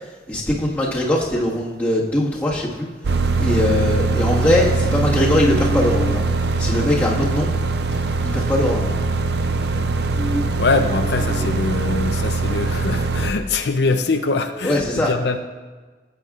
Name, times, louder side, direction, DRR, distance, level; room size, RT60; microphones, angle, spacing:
voice 1, 0.3-2.9 3.4-6.2 6.6-7.5 8.3-9.0 14.6-15.1, left 1 dB, 10° left, -6 dB, 1.5 m, -21 dB
sound 1, 3.0-13.3, right 3 dB, 65° right, 0.5 m, -22 dB
sound 2, 5.0-6.3 6.8-8.5 8.8-11.5, equal, 5° right, 2.0 m, -31 dB
voice 2, 10.6-15.4, left 3 dB, 70° left, 6 dB, 0.5 m, -23 dB
17.0 x 8.0 x 2.4 m, 1.3 s
head